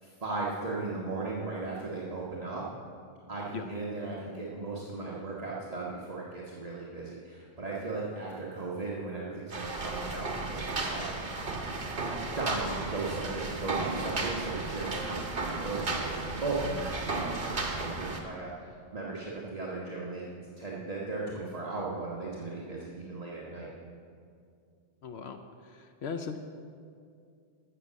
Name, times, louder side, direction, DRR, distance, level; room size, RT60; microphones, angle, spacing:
voice 1, 0.0-2.6 3.3-11.1 12.2-20.3 20.6-23.7, right 3 dB, 35° right, -5 dB, 1.3 m, -37 dB
sound 1, 9.5-18.2, right 3 dB, 55° right, 1.5 m, -34 dB
voice 2, 25.0-26.4, left 5 dB, 70° left, 7 dB, 0.9 m, -39 dB
13.5 x 6.5 x 7.4 m, 2.3 s
omnidirectional pair, 1.1 m